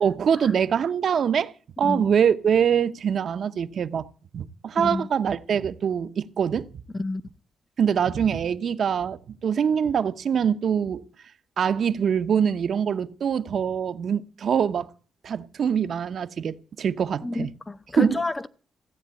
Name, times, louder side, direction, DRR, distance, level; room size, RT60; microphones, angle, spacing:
voice 1, 0.0-1.5 1.8-4.1 4.3-6.7 7.8-11.0 11.6-14.9 15.2-17.5 17.9-18.2, right 7 dB, 55° right, 0.7 m, -24 dB
voice 2, 4.8-5.1 6.9-7.2 17.2-18.5, left 2 dB, 15° left, 0.6 m, -28 dB
15.0 x 8.7 x 8.2 m
cardioid pair, 130°, 0 cm